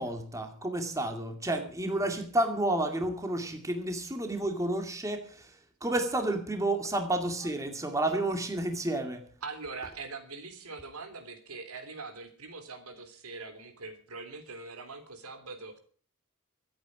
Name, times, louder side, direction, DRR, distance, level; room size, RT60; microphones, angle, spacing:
voice 1, 0.0-5.5 5.8-9.3, right 1 dB, 15° right, 2.2 m, -31 dB
voice 2, 9.4-15.8, right 4 dB, 80° right, 3.3 m, -42 dB
24.5 x 8.8 x 4.9 m
head